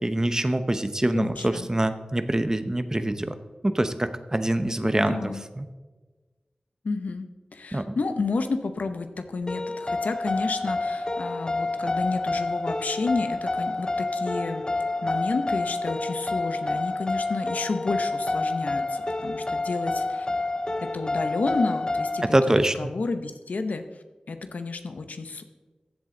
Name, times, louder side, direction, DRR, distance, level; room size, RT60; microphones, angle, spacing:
voice 1, 0.0-3.4 3.6-5.7 7.7-7.9 22.3-22.9, right 1 dB, 25° right, 10 dB, 0.8 m, -25 dB
voice 2, 1.1-1.7 4.8-5.5 6.8-14.6 15.0-20.3 20.8-23.8 24.3-25.4, left 3 dB, 85° left, 8 dB, 0.8 m, -31 dB
sound 1, 9.5-22.3, left 2 dB, 30° left, 0.5 m, -28 dB
14.5 x 7.6 x 3.8 m, 1.3 s
wide cardioid pair, 50°, 3 cm